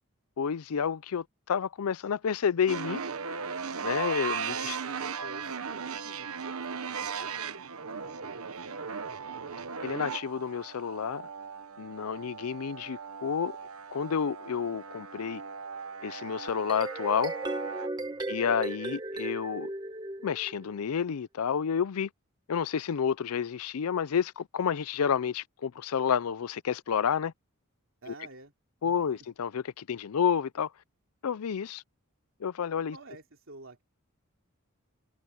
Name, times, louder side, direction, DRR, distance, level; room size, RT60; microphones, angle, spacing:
voice 1, 0.4-3.0 3.8-4.8 9.8-11.3 11.8-13.6 13.9-15.4 16.0-17.3 18.3-19.7 20.2-22.1 22.5-27.3 28.8-30.7 31.2-31.8 32.4-32.9, left 7 dB, 85° left, 0.5 m, -30 dB
sound 1, 2.7-17.9, right 6 dB, 80° right, 1.2 m, -37 dB
voice 2, 4.4-9.2 18.0-18.4 28.0-28.5 28.8-29.3 32.9-33.8, right 2 dB, 65° right, 3.3 m, -50 dB
sound 2, 16.5-20.8, right 2 dB, 20° right, 1.2 m, -36 dB
head